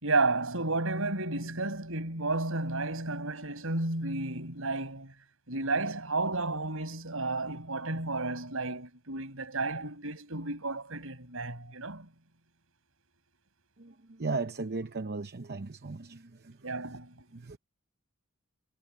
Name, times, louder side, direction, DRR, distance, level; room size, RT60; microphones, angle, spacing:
voice 1, 0.0-5.1 5.5-12.1 16.6-17.1, right 3 dB, 65° right, 5.9 m, -32 dB
voice 2, 13.8-16.6 16.9-17.0 17.3-17.6, right 3 dB, 45° right, 0.8 m, -36 dB
head